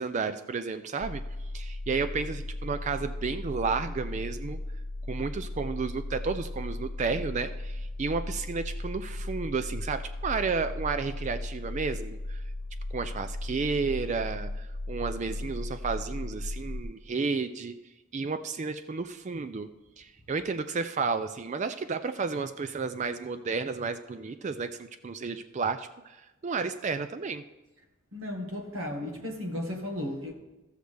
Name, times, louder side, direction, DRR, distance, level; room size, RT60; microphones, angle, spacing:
voice 1, 0.0-4.6 5.1-12.4 12.9-17.8 18.1-19.7 20.0-27.4, right 4 dB, 35° right, 0.3 m, -32 dB
sound 1, 1.0-16.8, left 1 dB, 45° left, 0.5 m, -36 dB
voice 2, 28.1-30.3, left 1 dB, 70° right, 1.7 m, -34 dB
15.5 x 6.5 x 3.4 m
head